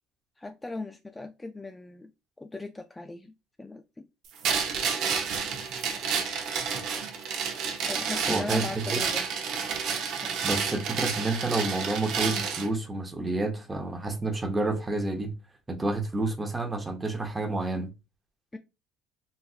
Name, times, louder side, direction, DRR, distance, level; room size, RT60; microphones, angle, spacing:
voice 1, 0.4-2.1 2.4-3.3 3.6-4.1 7.9-9.3 10.2-10.5 18.5-18.6, left 3 dB, 15° left, 0.3 m, -38 dB
sound 1, 4.4-12.7, right 6 dB, 65° right, 0.8 m, -30 dB
voice 2, 8.3-9.0 10.4-15.3 15.7-17.9, right 2 dB, 15° right, 0.8 m, -29 dB
3.9 x 2.5 x 2.4 m
supercardioid pair, 95°, 0 cm